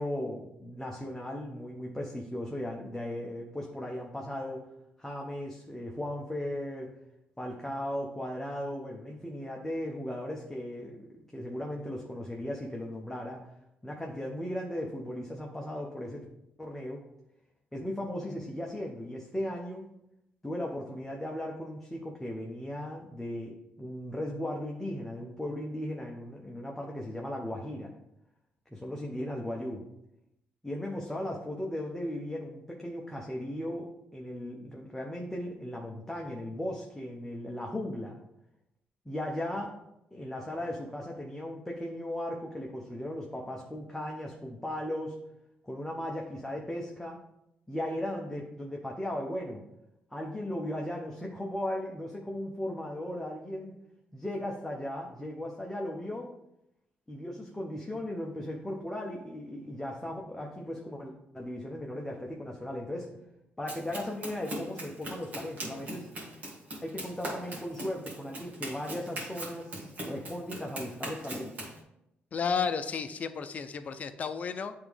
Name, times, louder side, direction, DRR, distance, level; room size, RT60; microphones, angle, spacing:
voice 1, 0.0-4.6 5.0-6.9 7.4-13.5 13.8-16.2 16.6-17.0 17.7-19.9 20.4-27.9 28.7-29.8 30.6-38.2 39.1-39.7 40.1-45.2 45.6-47.2 47.7-49.7 50.1-53.8 54.1-56.3 57.1-63.2 63.6-66.1 66.8-71.5, left 1 dB, 10° left, -1 dB, 0.8 m, -37 dB
Run, 63.7-71.8, right 1 dB, 50° right, 1.9 m, -40 dB
voice 2, 72.3-74.7, left 6 dB, 40° left, 10 dB, 0.5 m, -32 dB
8.7 x 3.5 x 3.4 m, 0.85 s
cardioid pair, 100°, 4 cm